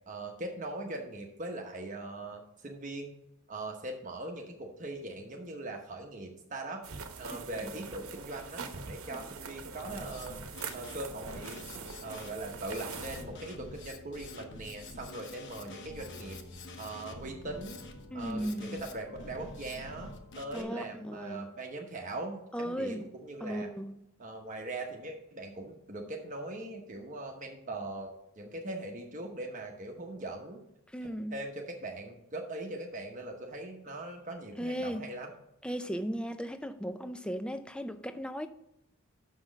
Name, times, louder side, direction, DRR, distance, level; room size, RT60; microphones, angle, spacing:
voice 1, 0.1-3.1 3.5-6.9 7.2-10.4 10.7-11.6 12.0-16.4 16.8-17.8 18.1-23.7 24.2-30.6 31.3-35.3, right 2 dB, 35° right, 0.9 m, -41 dB
sheep chewing gras, 6.8-13.2, right 5 dB, 70° right, 0.9 m, -43 dB
Drum kit, 9.8-20.6, left 2 dB, 55° left, 0.9 m, -47 dB
voice 2, 18.1-18.8 20.5-21.5 22.5-23.0 23.4-23.9 30.9-31.4 34.6-35.1 35.6-38.5, equal, 5° left, 0.4 m, -36 dB
6.4 x 6.0 x 6.2 m
head